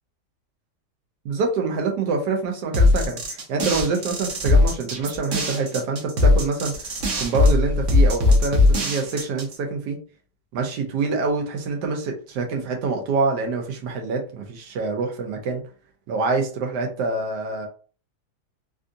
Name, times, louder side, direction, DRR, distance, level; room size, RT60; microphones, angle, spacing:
voice 1, 1.2-6.9 7.2-10.0 10.5-15.6 16.1-17.7, right 4 dB, 85° right, 3 dB, 1.3 m, -26 dB
sound 1, 2.7-9.5, left 2 dB, 55° right, 1.0 m, -19 dB
3.4 x 2.5 x 2.6 m, 0.38 s
omnidirectional pair, 1.8 m